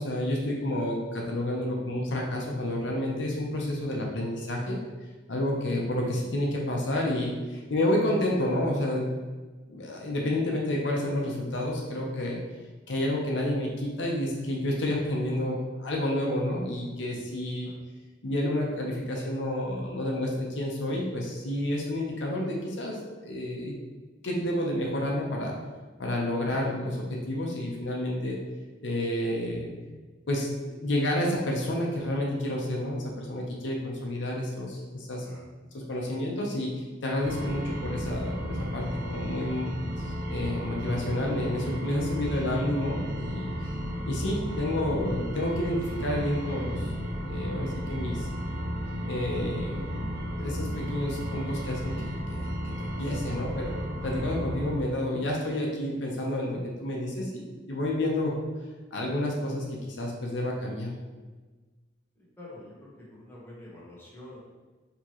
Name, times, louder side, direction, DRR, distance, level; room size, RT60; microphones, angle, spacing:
voice 1, 0.0-4.8 5.3-9.1 9.7-12.4 12.9-17.7 18.2-23.7 24.2-25.6 26.0-28.4 28.8-29.7 30.3-35.3 35.7-36.7 37.0-43.5 44.1-46.8 47.2-48.3 49.1-51.9 52.3-52.5 52.8-53.8 54.0-58.3 58.9-60.9, left 1 dB, 75° left, -1 dB, 0.7 m, -30 dB
sound 1, 37.2-54.7, equal, 60° right, 1.0 m, -33 dB
voice 2, 62.4-64.4, left 1 dB, 10° left, -6 dB, 1.0 m, -46 dB
4.5 x 3.0 x 2.9 m, 1.3 s
head